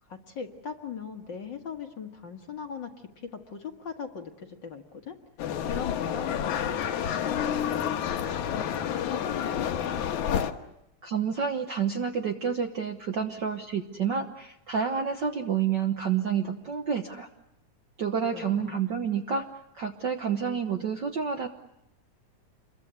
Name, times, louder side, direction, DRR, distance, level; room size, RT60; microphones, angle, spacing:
voice 1, 0.0-5.2 5.7-10.0 18.3-18.8, left 6 dB, 45° left, 4 dB, 1.9 m, -40 dB
sound 1, 5.4-10.5, left 9 dB, 80° left, 2.6 m, -29 dB
voice 2, 11.0-17.3 18.0-19.4 19.7-21.5, right 7 dB, 55° right, 4 dB, 1.3 m, -29 dB
27.5 x 22.5 x 8.1 m, 0.87 s
omnidirectional pair, 3.4 m